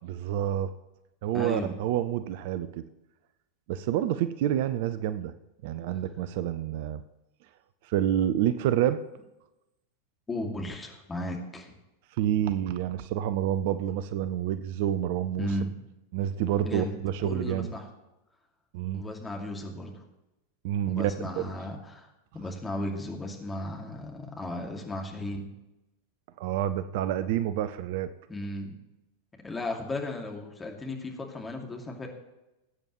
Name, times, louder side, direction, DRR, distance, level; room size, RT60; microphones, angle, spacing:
voice 1, 0.0-0.7 1.2-2.8 3.7-5.3 5.6-7.0 7.8-9.0 12.2-15.5 16.1-17.7 18.7-19.0 20.6-21.5 26.4-28.1, right 11 dB, 50° right, 13 dB, 0.5 m, -28 dB
voice 2, 1.3-1.7 10.3-11.7 15.4-15.7 16.6-16.9 17.2-17.9 18.9-20.0 20.9-25.4 28.3-28.7 29.4-32.1, left 1 dB, 15° left, 1 dB, 2.3 m, -35 dB
19.0 x 8.7 x 3.0 m, 0.94 s
figure-of-eight pair, 90°, 0 cm